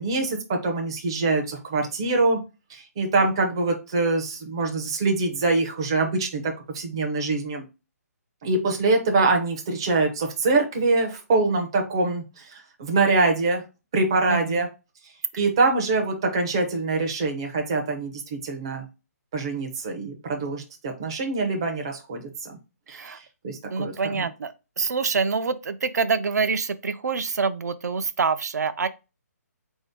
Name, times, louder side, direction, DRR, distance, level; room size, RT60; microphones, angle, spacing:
voice 1, 0.0-2.4 2.7-7.6 8.4-13.6 13.9-14.7 15.4-18.8 19.3-22.6 22.9-23.2 23.4-24.3, right 3 dB, 15° right, 0.4 m, -24 dB
voice 2, 14.3-14.7 22.9-23.2 23.7-28.9, right 5 dB, 80° right, 0.4 m, -26 dB
3.9 x 2.7 x 3.4 m
hypercardioid pair, 180°, 9 cm